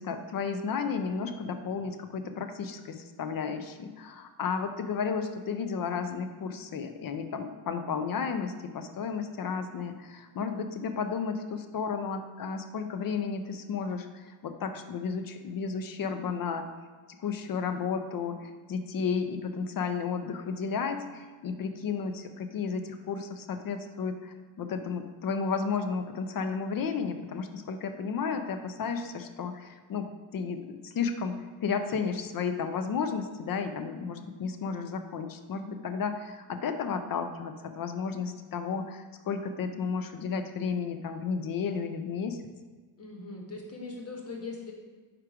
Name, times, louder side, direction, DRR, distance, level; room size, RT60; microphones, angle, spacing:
voice 1, 0.0-16.7 17.2-31.3 31.6-42.4, left 5 dB, 45° left, 8 dB, 0.5 m, -33 dB
voice 2, 43.0-44.7, left 3 dB, 30° left, 0 dB, 1.0 m, -40 dB
4.9 x 4.5 x 4.9 m, 1.4 s
wide cardioid pair, 160°, 48 cm